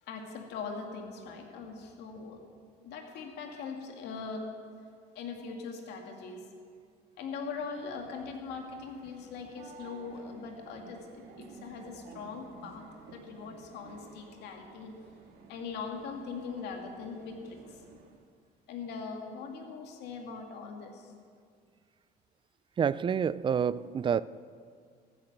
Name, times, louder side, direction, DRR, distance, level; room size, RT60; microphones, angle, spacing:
voice 1, 0.0-2.4 2.8-4.5 5.1-6.4 7.2-12.8 13.1-14.9 15.5-17.8 18.7-21.1, left 5 dB, 85° left, 2.3 m, -41 dB
sound 1, 7.5-18.3, right 4 dB, 85° right, 1.6 m, -54 dB
voice 2, 22.8-24.2, right 7 dB, 30° right, 0.3 m, -28 dB
15.0 x 9.9 x 6.7 m
cardioid pair, 110°, 17 cm